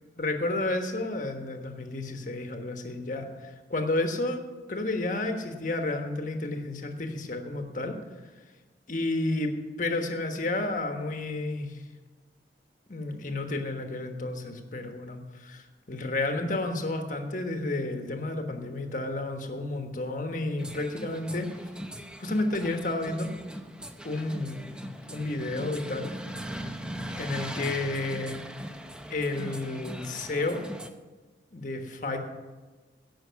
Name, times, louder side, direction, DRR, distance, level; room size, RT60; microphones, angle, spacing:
voice 1, 0.2-4.4 4.7-8.0 8.9-11.8 12.9-21.5 22.2-23.3 24.0-24.8 25.1-26.1 27.2-28.4 29.1-30.6 31.5-32.2, left 2 dB, 45° left, 5 dB, 1.3 m, -31 dB
sound 1, 20.6-30.9, equal, 5° right, 0.6 m, -40 dB
16.5 x 6.3 x 5.8 m, 1.3 s
head